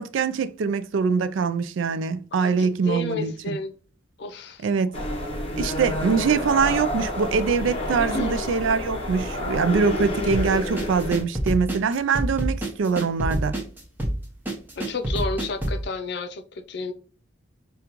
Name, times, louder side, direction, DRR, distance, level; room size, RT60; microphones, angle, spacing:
voice 1, 0.0-3.6 4.6-4.9 5.6-13.6, right 5 dB, 80° right, 0.4 m, -23 dB
voice 2, 2.4-3.8 4.2-4.7 8.0-8.4 14.8-16.9, left 3 dB, 60° left, 0.5 m, -31 dB
sound 1, 4.9-11.2, left 1 dB, 30° left, 0.8 m, -29 dB
sound 2, 10.3-15.8, right 1 dB, 10° right, 0.8 m, -27 dB
5.1 x 2.3 x 2.9 m
head